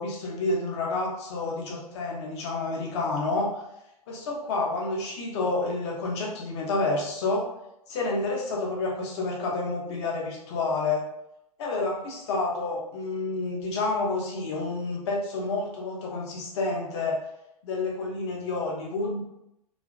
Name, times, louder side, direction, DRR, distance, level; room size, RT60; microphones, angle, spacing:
voice 1, 0.0-3.6 4.1-7.5 7.9-11.1 11.6-17.2 17.6-19.2, left 3 dB, 45° left, -1 dB, 0.8 m, -29 dB
2.9 x 2.4 x 2.4 m, 0.84 s
figure-of-eight pair, 105°, 20 cm